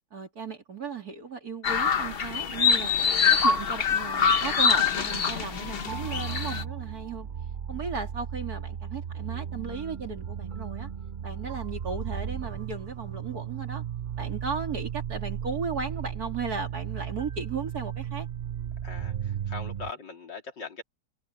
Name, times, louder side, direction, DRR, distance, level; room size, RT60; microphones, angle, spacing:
voice 1, 0.1-7.3 7.7-10.9 11.2-13.8 14.2-18.3, right 5 dB, 55° right, 3.4 m, -36 dB
sound 1, 1.6-6.6, left 6 dB, 40° left, 1.0 m, -24 dB
sound 2, 5.0-19.9, right 8 dB, 80° right, 0.4 m, -35 dB
voice 2, 18.8-20.8, left 4 dB, 85° left, 4.4 m, -41 dB
omnidirectional pair, 1.9 m